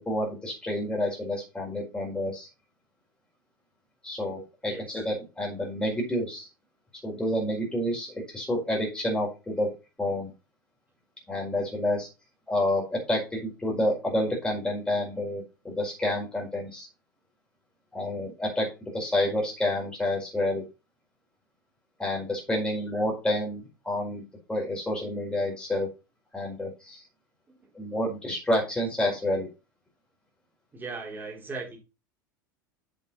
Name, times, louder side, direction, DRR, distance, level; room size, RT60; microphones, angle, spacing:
voice 1, 0.0-2.5 4.0-6.5 7.0-9.7 10.0-10.3 11.3-12.1 12.5-16.9 17.9-18.7 18.9-20.6 22.0-24.2 24.5-25.9 26.3-27.0 27.7-29.5, left 1 dB, 10° left, 4.7 m, -29 dB
voice 2, 4.6-5.0 27.5-27.7 30.7-31.8, right 4 dB, 15° right, 4.0 m, -38 dB
7.9 x 7.6 x 4.2 m
figure-of-eight pair, 80°, 11 cm